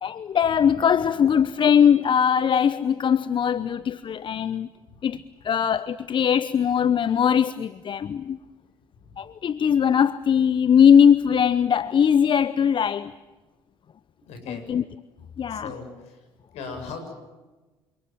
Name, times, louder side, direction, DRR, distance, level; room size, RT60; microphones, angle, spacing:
voice 1, 0.0-4.7 5.0-8.4 9.2-13.1 14.5-14.8 15.4-15.7, left 8 dB, 45° left, 0.8 m, -20 dB
voice 2, 14.3-14.7 15.5-16.1 16.5-17.1, left 4 dB, 65° left, 7.5 m, -38 dB
28.0 x 26.0 x 7.4 m
hypercardioid pair, 55°, 12 cm